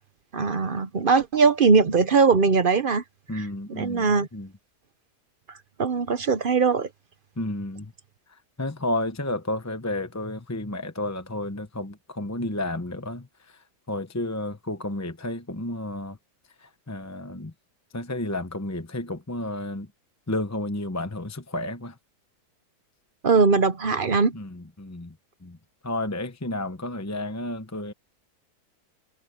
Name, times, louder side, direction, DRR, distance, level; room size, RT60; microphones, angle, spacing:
voice 1, 0.3-3.0 3.3-3.5 3.8-4.3 5.8-6.9 23.2-24.3, right 4 dB, 45° right, 0.7 m, -20 dB
voice 2, 3.3-4.5 7.4-7.9 8.6-16.2 16.6-17.5 17.9-19.9 20.3-22.0 24.3-25.1 25.4-25.6 25.8-27.9, left 1 dB, 15° left, 0.6 m, -31 dB
omnidirectional pair, 1.8 m